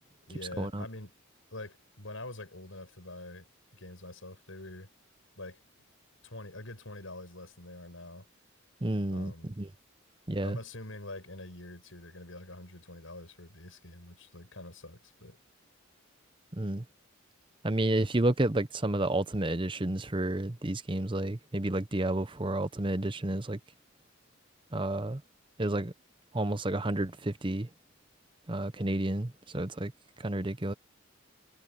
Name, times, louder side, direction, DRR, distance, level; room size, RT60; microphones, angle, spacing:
voice 1, 0.3-1.1 1.5-3.5 3.7-4.9 5.4-5.6 6.2-8.3 9.1-9.5 10.4-15.4, left 2 dB, 70° left, 6.6 m, -45 dB
voice 2, 8.8-9.7 10.3-10.6 16.5-16.8 17.6-23.6 24.7-25.2 25.6-25.9 26.3-27.7 28.5-29.9 30.2-30.7, right 1 dB, 25° right, 0.8 m, -30 dB
head